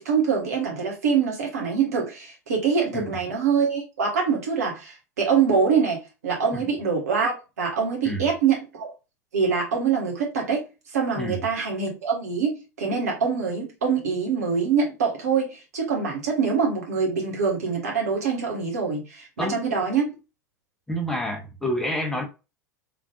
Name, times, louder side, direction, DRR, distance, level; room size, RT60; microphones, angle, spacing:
voice 1, 0.0-8.9 9.3-10.6 10.9-20.1, right 6 dB, 65° right, 1.6 m, -24 dB
voice 2, 20.9-22.2, equal, 5° left, 0.9 m, -28 dB
3.6 x 3.5 x 2.4 m
figure-of-eight pair, 80°, 9 cm